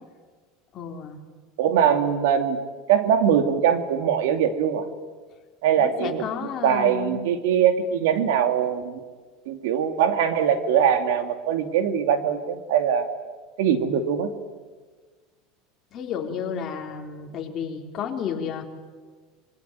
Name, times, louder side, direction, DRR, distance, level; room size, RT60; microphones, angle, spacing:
voice 1, 0.7-1.2 5.8-7.2 15.9-18.6, left 7 dB, 35° left, 2 dB, 4.0 m, -32 dB
voice 2, 1.6-2.6 2.9-4.9 5.6-6.2 6.6-9.0 9.5-13.1 13.6-14.3, right 8 dB, 85° right, 8 dB, 2.6 m, -22 dB
26.0 x 23.5 x 9.4 m, 1.4 s
supercardioid pair, 155°, 0 cm